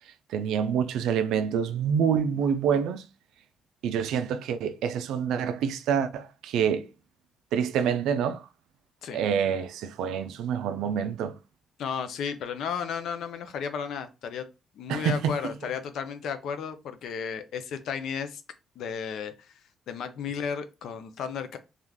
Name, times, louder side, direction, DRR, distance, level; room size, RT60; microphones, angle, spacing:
voice 1, 0.3-3.0 3.8-6.9 7.5-8.4 9.1-11.3 14.9-15.3, right 7 dB, 85° right, 0.3 m, -27 dB
voice 2, 11.8-14.5 14.8-18.4 18.8-19.5 19.9-21.6, left 6 dB, 75° left, 0.4 m, -33 dB
2.4 x 2.2 x 3.3 m
cardioid pair, 90°, 0 cm